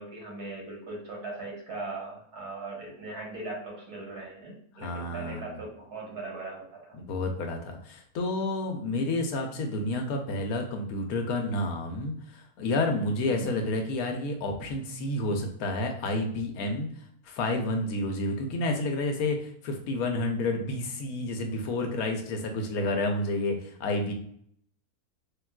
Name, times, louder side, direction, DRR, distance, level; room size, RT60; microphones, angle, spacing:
voice 1, 0.0-6.9 13.2-13.7, right 2 dB, 80° right, -3 dB, 1.6 m, -39 dB
voice 2, 4.8-5.6 7.0-16.9 17.3-24.1, left 2 dB, 75° left, 4 dB, 1.0 m, -30 dB
3.5 x 2.3 x 2.2 m, 0.66 s
omnidirectional pair, 1.6 m